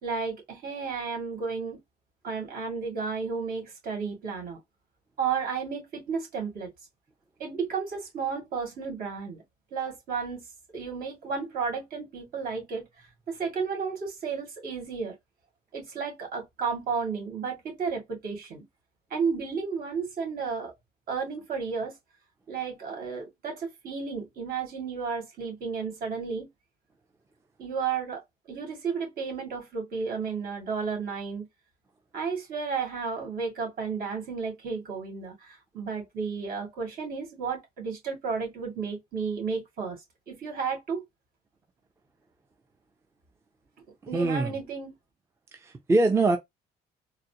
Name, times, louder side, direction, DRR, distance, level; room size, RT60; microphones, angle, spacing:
voice 1, 0.0-1.8 2.2-4.6 5.2-6.7 7.4-9.4 9.7-10.4 10.7-15.1 15.7-18.6 19.1-20.7 21.1-21.9 22.5-26.5 27.6-31.5 32.1-41.0 44.1-44.9, right 5 dB, 60° right, 2.1 m, -33 dB
voice 2, 44.1-44.5 45.5-46.4, right 2 dB, 15° right, 0.5 m, -23 dB
4.0 x 2.1 x 2.8 m
cardioid pair, 110°, 17 cm